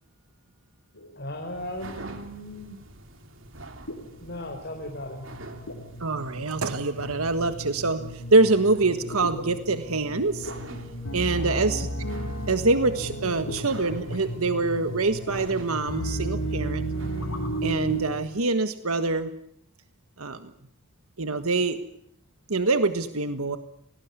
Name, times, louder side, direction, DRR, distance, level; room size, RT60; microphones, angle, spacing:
sound 1, 1.0-1.2 3.9-18.1, right 1 dB, 75° left, 8.0 m, -34 dB
voice 1, 1.2-2.8 4.2-5.3 11.3-11.7, left 1 dB, 50° left, 2 dB, 4.5 m, -36 dB
sound 2, 1.2-18.4, right 1 dB, 60° right, 3.1 m, -46 dB
voice 2, 6.0-10.5 11.1-11.9 12.5-16.8 17.6-19.3 20.2-20.5 21.2-21.8 22.5-23.6, right 3 dB, 75° right, 9 dB, 1.5 m, -25 dB
27.5 x 19.0 x 9.7 m, 0.73 s
head